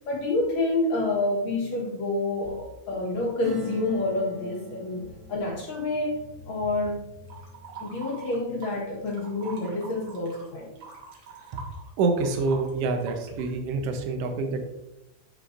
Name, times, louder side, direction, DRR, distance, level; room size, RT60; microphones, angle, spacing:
voice 1, 0.1-7.0 7.8-10.7, left 2 dB, 60° left, -3 dB, 2.4 m, -28 dB
Acoustic guitar / Strum, 3.4-9.6 10.0-10.1, equal, ahead, 0.5 m, -45 dB
sound 1, 7.3-8.8 9.1-13.5, right 5 dB, 65° right, 2.9 m, -44 dB
voice 2, 12.0-14.6, right 3 dB, 80° right, 4 dB, 1.3 m, -26 dB
12.5 x 5.0 x 2.5 m, 0.90 s
omnidirectional pair, 3.7 m